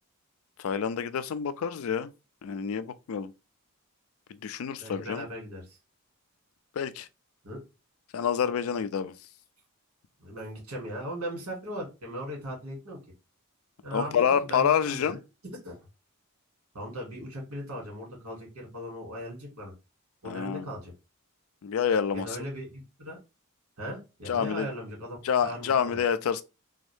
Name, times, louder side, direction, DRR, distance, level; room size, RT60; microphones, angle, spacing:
voice 1, 0.6-2.1 2.4-3.3 4.4-5.3 6.8-7.1 8.1-9.2 13.9-15.2 20.2-20.7 21.6-22.4 24.3-24.7 25.2-26.4, left 7 dB, 70° left, 0.4 m, -27 dB
voice 2, 4.8-5.8 7.4-7.6 10.2-13.0 13.8-15.2 15.6-15.7 16.7-19.7 20.2-20.9 22.1-23.2 23.8-26.0, equal, 90° right, 2.3 m, -38 dB
3.5 x 2.6 x 3.4 m
head